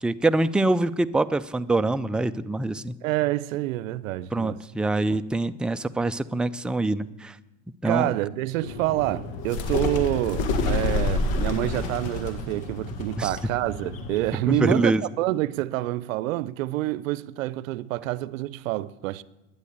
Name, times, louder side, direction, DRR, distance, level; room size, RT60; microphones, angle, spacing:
voice 1, 0.0-2.9 4.3-7.3 7.8-8.1 13.2-13.3 14.5-15.0, right 2 dB, ahead, 0.4 m, -24 dB
voice 2, 3.0-4.6 5.1-5.2 7.8-19.2, right 16 dB, 90° right, 0.6 m, -27 dB
sound 1, 8.6-14.3, left 3 dB, 65° left, 2.0 m, -29 dB
11.5 x 9.5 x 8.2 m
supercardioid pair, 85°, 39 cm